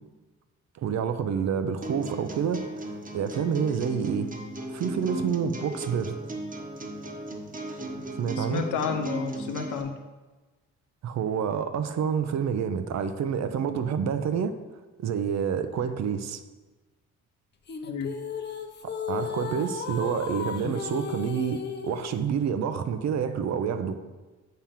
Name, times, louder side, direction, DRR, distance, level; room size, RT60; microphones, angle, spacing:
voice 1, 0.8-4.3 4.7-6.2 8.2-8.6 11.0-14.5 15.0-16.4 18.8-24.0, right 7 dB, 65° right, 10 dB, 0.7 m, -28 dB
sound 1, 1.8-9.8, right 1 dB, 25° right, 1.2 m, -36 dB
voice 2, 8.4-10.0 17.8-18.1 20.6-20.7, left 6 dB, 90° left, 6 dB, 0.8 m, -31 dB
sound 2, 17.7-22.2, left 6 dB, 35° left, 0.7 m, -35 dB
7.5 x 3.5 x 5.8 m, 1.2 s
cardioid pair, 90°, 30 cm